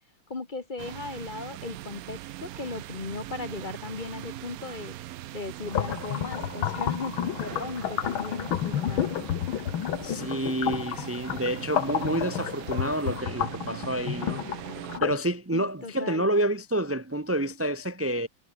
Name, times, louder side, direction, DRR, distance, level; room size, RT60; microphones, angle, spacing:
voice 1, 0.3-4.9 5.3-9.1 15.5-16.3, left 3 dB, 25° left, 1.5 m, -37 dB
sound 1, 0.8-15.0, right 14 dB, 80° right, 0.8 m, -40 dB
sound 2, 5.6-15.2, left 10 dB, 90° left, 2.0 m, -31 dB
voice 2, 10.0-14.4 15.0-18.3, right 1 dB, 20° right, 0.3 m, -28 dB
omnidirectional pair, 2.2 m